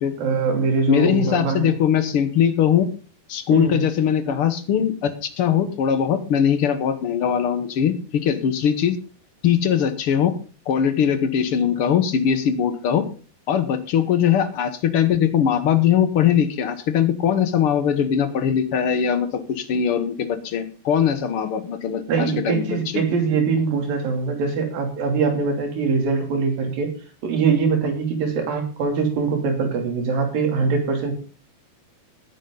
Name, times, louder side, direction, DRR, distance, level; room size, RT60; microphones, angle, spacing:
voice 1, 0.2-1.8 3.5-3.8 22.1-26.9 27.2-31.1, right 5 dB, 80° right, 4 dB, 4.7 m, -22 dB
voice 2, 0.9-2.9 3.3-8.9 9.4-10.3 10.7-13.1 13.5-23.0, left 8 dB, 60° left, 10 dB, 1.5 m, -21 dB
17.0 x 10.0 x 3.9 m, 0.37 s
omnidirectional pair, 4.1 m